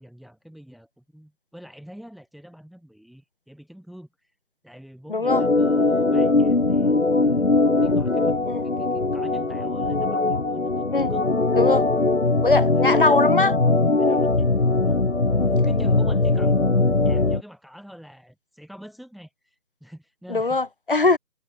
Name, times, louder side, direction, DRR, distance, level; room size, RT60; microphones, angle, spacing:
voice 1, 0.0-4.3 4.6-7.4 7.8-10.8 11.1-11.3 11.8-11.9 12.2-12.9 14.0-14.5 14.8-15.1 15.3-20.6 21.0-21.2, equal, ahead, 2.6 m, -46 dB
voice 2, 5.1-5.4 8.5-8.6 10.9-11.1 11.5-11.9 12.4-13.6 14.0-14.2 15.4-15.5 20.3-21.2, left 3 dB, 35° left, 3.2 m, -21 dB
Organ, 5.3-17.4, left 3 dB, 50° left, 6.3 m, -20 dB
figure-of-eight pair, 165°, 45 cm